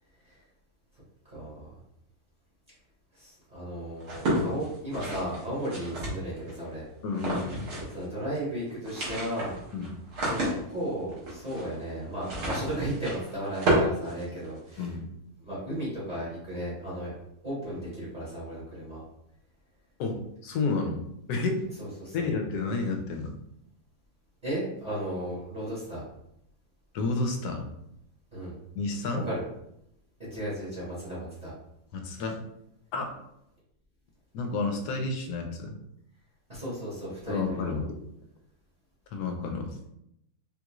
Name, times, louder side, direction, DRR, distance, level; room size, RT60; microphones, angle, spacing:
voice 1, 1.3-1.7 3.1-6.8 7.9-9.5 10.2-10.4 10.7-14.9 15.4-17.1 17.4-19.0 21.8-22.3 24.4-26.0 28.3-28.5 29.1-29.4 30.3-31.5 36.5-37.8, right 1 dB, 30° right, -8 dB, 1.2 m, -35 dB
sound 1, 4.0-6.5 7.1-8.0 8.3-8.4 8.7-14.8, right 1 dB, 75° right, 1.6 m, -31 dB
voice 2, 7.0-7.6 9.7-9.9 14.8-15.0 20.0-21.0 21.3-21.7 22.1-23.4 26.9-27.7 28.7-29.2 31.9-32.4 32.9-33.1 34.3-35.8 37.3-37.9 39.1-39.7, left 3 dB, 85° left, 4 dB, 1.2 m, -30 dB
3.7 x 2.4 x 2.9 m, 0.78 s
omnidirectional pair, 1.7 m